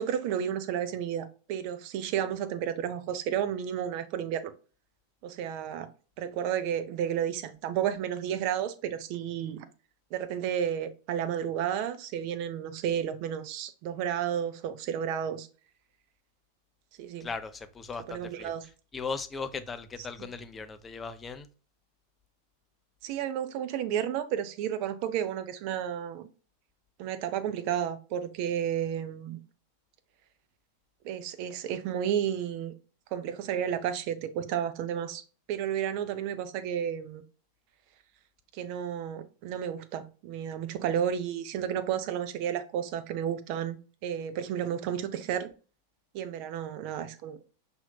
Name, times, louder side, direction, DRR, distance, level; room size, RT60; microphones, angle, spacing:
voice 1, 0.0-4.5 5.2-5.9 6.2-9.7 10.1-15.5 17.0-17.3 18.1-18.6 20.2-20.3 23.0-26.3 27.0-29.4 31.0-32.7 33.1-35.2 35.5-37.2 38.5-45.5 46.1-47.5, right 9 dB, 45° right, 0.5 m, -32 dB
voice 2, 17.2-18.5 18.9-21.5, left 5 dB, 20° left, 0.4 m, -38 dB
5.6 x 2.8 x 2.2 m
figure-of-eight pair, 90°, 0 cm